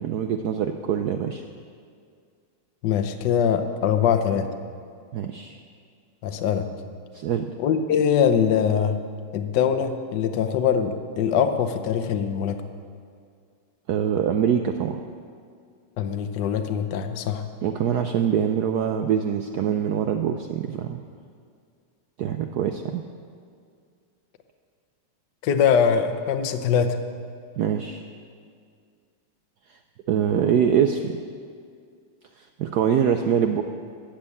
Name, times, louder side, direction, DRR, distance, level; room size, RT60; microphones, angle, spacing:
voice 1, 0.0-1.4 5.1-5.6 7.1-7.5 13.9-15.0 17.6-21.0 22.2-23.0 27.6-28.0 29.7-29.8 30.1-31.2 32.4-33.6, right 8 dB, 80° right, 6 dB, 0.8 m, -24 dB
voice 2, 2.8-4.5 6.2-6.7 7.6-9.0 9.3-12.6 16.0-17.4 25.4-27.0, left 7 dB, 65° left, 8 dB, 1.3 m, -22 dB
13.0 x 7.7 x 8.4 m, 2.2 s
omnidirectional pair, 2.3 m